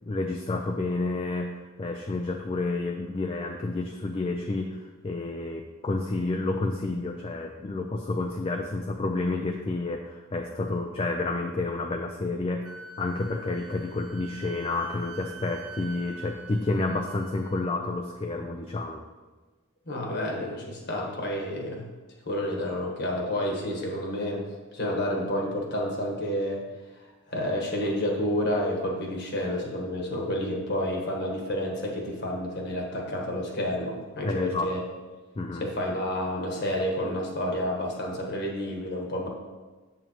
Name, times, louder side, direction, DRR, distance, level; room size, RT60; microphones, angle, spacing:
voice 1, 0.0-19.0 34.2-34.7 35.4-35.6, left 2 dB, 25° left, 3 dB, 0.4 m, -30 dB
Wind instrument woodwind instrument, 12.6-17.8, right 4 dB, 80° right, 0.6 m, -45 dB
voice 2, 19.9-21.9 22.3-24.4 24.7-26.6 27.0-34.8 35.6-39.3, left 1 dB, 50° left, 0 dB, 1.3 m, -30 dB
7.6 x 7.0 x 3.0 m, 1.3 s
head